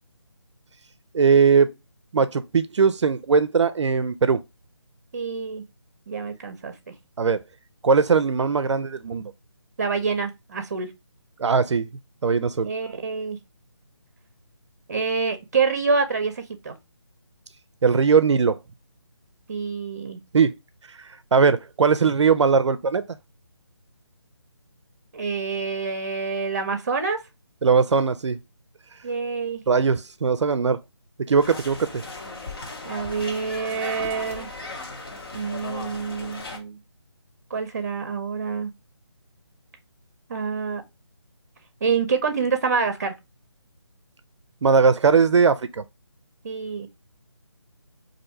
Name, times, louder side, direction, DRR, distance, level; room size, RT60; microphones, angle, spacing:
voice 1, 1.1-1.7 2.1-4.4 7.2-7.4 7.8-9.3 11.4-11.9 12.2-12.7 17.8-18.6 20.3-20.5 21.3-23.0 27.6-28.4 29.7-30.8 31.3-32.0 44.6-45.8, right 5 dB, 80° right, 0.4 m, -19 dB
voice 2, 5.1-5.6 6.1-6.7 9.8-10.9 12.6-13.4 14.9-16.7 19.5-20.2 25.1-27.2 29.0-29.6 32.8-34.5 35.3-36.8 37.5-38.7 40.3-40.8 41.8-43.1 46.4-46.9, right 5 dB, 35° right, 0.6 m, -27 dB
sound 1, 31.4-36.6, left 3 dB, 55° left, 1.0 m, -37 dB
2.6 x 2.6 x 4.2 m
figure-of-eight pair, 165°, 15 cm